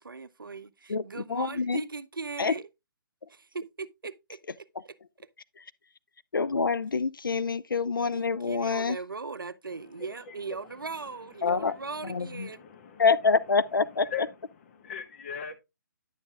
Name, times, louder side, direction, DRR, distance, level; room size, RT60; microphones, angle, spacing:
voice 1, 0.0-2.7 3.3-4.7 8.0-12.6, right 4 dB, 75° right, 0.5 m, -39 dB
voice 2, 0.9-1.8 2.4-2.5 5.6-5.7 6.3-9.0 11.4-11.7 12.0-12.5 13.0-14.3, left 5 dB, 75° left, 0.4 m, -26 dB
voice 3, 9.7-13.1 14.0-14.3 14.6-15.6, left 8 dB, 40° left, 1.2 m, -42 dB
10.0 x 7.1 x 2.3 m
figure-of-eight pair, 135°, 11 cm